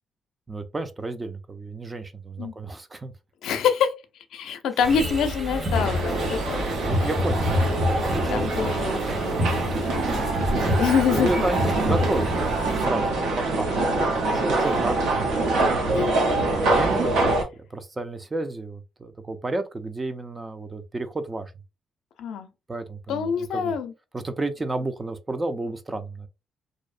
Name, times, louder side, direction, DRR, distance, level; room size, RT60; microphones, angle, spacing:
voice 1, 0.5-3.1 6.6-8.7 11.1-13.7 14.0-15.4 16.5-17.1 17.6-21.5 22.7-23.7 24.1-26.3, right 2 dB, 25° right, 0.4 m, -31 dB
voice 2, 3.4-3.9 4.3-6.6 7.0-7.1 8.3-10.0 10.7-11.4 14.7-14.8 15.9-16.1 22.2-22.5 23.1-23.9, left 7 dB, 80° left, 0.4 m, -26 dB
sound 1, 4.8-12.9, left 1 dB, 45° right, 1.3 m, -28 dB
sound 2, 5.7-17.4, right 2 dB, 85° right, 0.6 m, -25 dB
2.6 x 2.0 x 2.4 m
cardioid pair, 90°, 0 cm